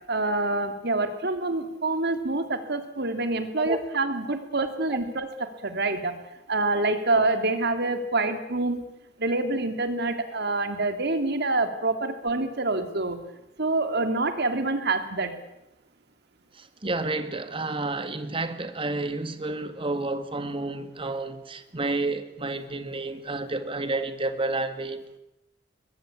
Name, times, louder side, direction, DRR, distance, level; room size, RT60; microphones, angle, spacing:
voice 1, 0.1-6.2 6.5-8.9 9.2-13.2 13.6-15.4, right 2 dB, 60° right, 2.7 m, -26 dB
voice 2, 16.5-25.2, right 2 dB, 30° right, 2.0 m, -30 dB
22.5 x 21.5 x 8.5 m
head